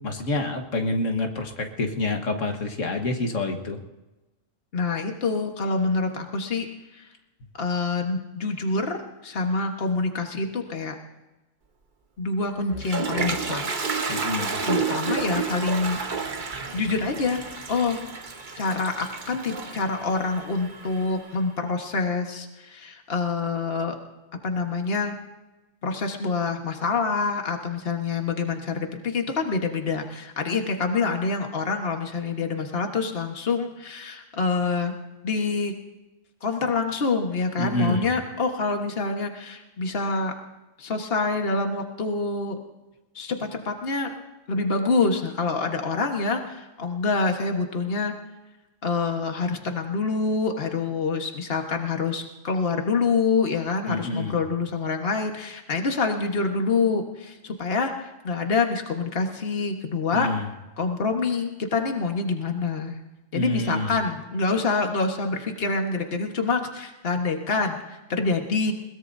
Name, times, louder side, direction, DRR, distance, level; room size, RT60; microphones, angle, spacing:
voice 1, 0.0-3.8 14.1-14.6 37.6-38.1 53.9-54.4 60.1-60.5 63.3-64.0, left 2 dB, 80° left, 3 dB, 1.8 m, -27 dB
voice 2, 4.7-6.7 6.9-7.0 7.6-9.0 9.2-10.9 12.2-13.7 14.6-16.0 16.7-18.0 18.6-23.9 24.4-25.1 25.8-34.9 35.2-35.7 36.4-40.3 40.8-42.6 43.1-44.1 44.5-48.1 48.8-60.3 60.8-63.0 63.3-68.7, left 4 dB, 50° left, 3 dB, 1.7 m, -26 dB
Toilet flush, 12.4-21.3, right 4 dB, 40° right, 1.2 m, -31 dB
21.5 x 20.5 x 2.7 m, 1.1 s
omnidirectional pair, 1.3 m